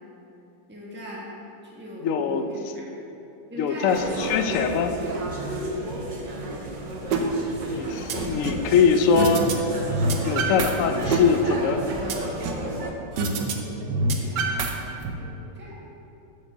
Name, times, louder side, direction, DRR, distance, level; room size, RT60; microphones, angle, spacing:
voice 1, 0.7-1.3 1.6-2.8 3.5-4.1 8.2-8.3 13.6-13.9 14.2-14.4 15.2-15.7, equal, 5° right, -5 dB, 1.2 m, -39 dB
voice 2, 2.0-2.4 3.6-4.9 7.7-9.5 10.2-11.8, left 6 dB, 70° left, 7 dB, 0.7 m, -22 dB
sound 1, 3.9-12.9, right 1 dB, 45° right, 0.6 m, -32 dB
sound 2, 7.1-7.2 7.6-8.7 9.2-9.5 9.8-10.7 11.0-12.7 13.2-13.5 13.8-15.1, right 3 dB, 80° right, 1.4 m, -26 dB
7.2 x 5.2 x 6.5 m, 3.0 s
omnidirectional pair, 1.8 m